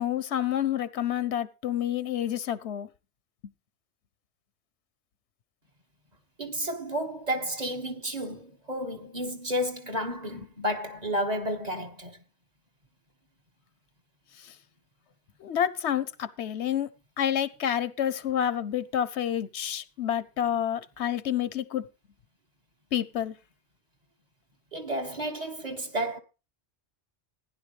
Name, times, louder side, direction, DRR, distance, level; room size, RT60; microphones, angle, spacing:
voice 1, 0.0-2.9 15.4-16.9 17.2-21.8 22.9-23.3, left 10 dB, 85° left, 1.1 m, -28 dB
voice 2, 6.4-12.2 24.7-26.2, equal, 40° right, 1.7 m, -31 dB
16.0 x 10.5 x 3.2 m
omnidirectional pair, 1.1 m